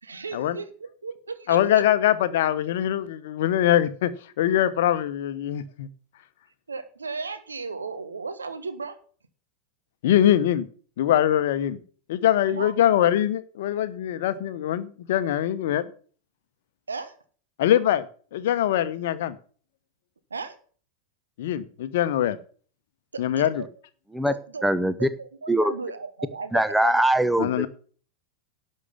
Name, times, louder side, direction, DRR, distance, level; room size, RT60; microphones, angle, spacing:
voice 1, 0.0-1.8 6.7-9.0 12.5-12.7 16.9-17.1 20.3-20.5 23.1-23.7 24.3-24.7 25.0-27.1, right 4 dB, 75° right, 1.4 m, -35 dB
voice 2, 1.5-4.1 4.4-5.9 10.0-10.7 11.0-11.8 12.1-15.9 17.6-18.1 18.3-19.4 21.4-22.4 23.2-23.6 27.4-27.7, left 11 dB, 55° left, 0.9 m, -23 dB
voice 3, 24.6-25.1 25.5-25.7 26.5-27.7, right 1 dB, ahead, 0.8 m, -21 dB
11.0 x 6.5 x 7.1 m
figure-of-eight pair, 90°, 0 cm